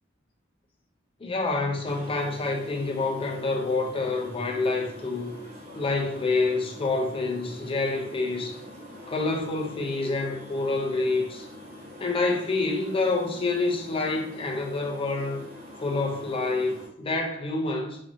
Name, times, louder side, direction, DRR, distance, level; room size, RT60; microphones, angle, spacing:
voice 1, 1.2-5.4 5.7-8.6 9.1-11.5 12.0-15.4 15.8-18.0, left 3 dB, 30° left, 0.4 m, -27 dB
sound 1, 1.9-16.9, left 1 dB, 30° right, 1.1 m, -44 dB
2.7 x 2.6 x 2.5 m
head